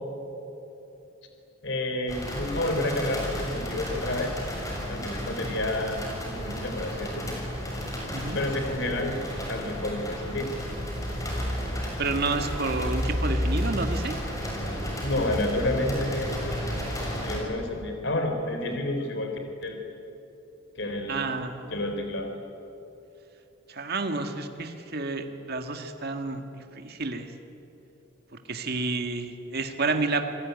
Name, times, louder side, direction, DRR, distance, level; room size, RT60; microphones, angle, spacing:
voice 1, 1.6-4.4 4.9-7.4 8.3-9.2 9.5-10.5 15.0-16.3 17.2-19.3 19.6-19.8 20.8-21.3 21.7-22.3, left 1 dB, 65° left, 5 dB, 3.7 m, -30 dB
sound 1, 2.1-17.4, equal, 15° left, 6.7 m, -32 dB
voice 2, 12.0-14.2 21.1-21.7 23.7-27.3 28.5-30.2, right 3 dB, 55° right, 6 dB, 1.9 m, -30 dB
28.0 x 20.0 x 9.5 m, 3.0 s
head